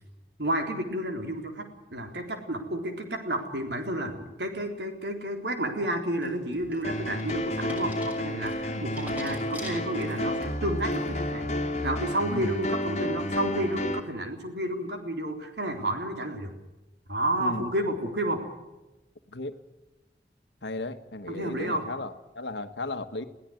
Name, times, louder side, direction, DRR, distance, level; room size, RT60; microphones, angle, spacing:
voice 1, 0.4-11.5 11.8-16.5 17.1-18.4 21.3-21.8, right 1 dB, 80° right, 4 dB, 3.9 m, -31 dB
sound 1, 6.2-10.4 10.9-11.3, left 1 dB, 10° right, 6.2 m, -45 dB
sound 2, 6.8-14.0, left 1 dB, 40° left, 2.3 m, -31 dB
voice 2, 20.6-23.2, left 2 dB, 85° left, 8 dB, 1.4 m, -35 dB
22.5 x 17.0 x 7.9 m, 1.0 s
head